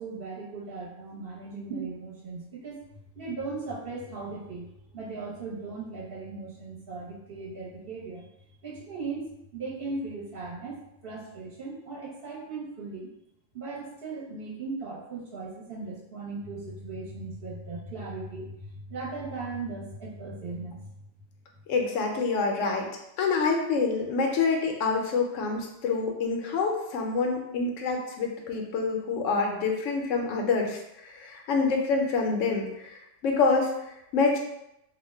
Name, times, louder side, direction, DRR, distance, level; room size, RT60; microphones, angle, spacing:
voice 1, 0.0-2.8 3.1-4.7 4.9-8.3 8.6-13.1 13.5-20.9, right 3 dB, 55° right, -5 dB, 0.9 m, -38 dB
voice 2, 21.7-22.9 23.2-33.7 34.1-34.4, left 4 dB, 85° left, 2 dB, 0.9 m, -27 dB
2.4 x 2.1 x 3.3 m, 0.84 s
omnidirectional pair, 1.3 m